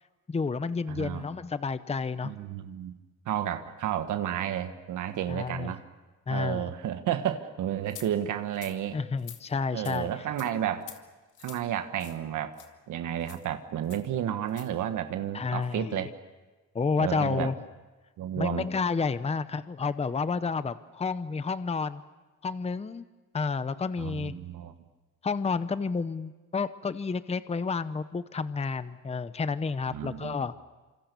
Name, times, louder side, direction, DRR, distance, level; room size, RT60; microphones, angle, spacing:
voice 1, 0.3-2.3 5.3-5.7 6.3-6.7 8.9-10.1 15.3-16.1 16.7-17.6 18.4-22.0 22.4-23.0 23.3-24.4 25.2-30.6, left 4 dB, 20° left, 13 dB, 0.8 m, -30 dB
voice 2, 0.9-1.2 2.2-3.0 3.2-5.8 6.3-9.0 9.7-10.9 11.4-12.6 12.9-16.1 17.0-17.5 18.2-18.7 24.0-24.7 29.9-30.4, right 10 dB, 80° right, 9 dB, 1.5 m, -32 dB
sound 1, 7.9-8.1 8.5-8.8 9.2-9.4 9.8-10.0 10.4-10.5 10.8-11.0 11.3-11.6 12.0-12.2 12.5-12.7 13.2-13.4 13.9-14.0 14.5-14.7, left 10 dB, 80° left, 2.2 m, -46 dB
27.0 x 26.0 x 6.9 m, 1.2 s
cardioid pair, 90°, 30 cm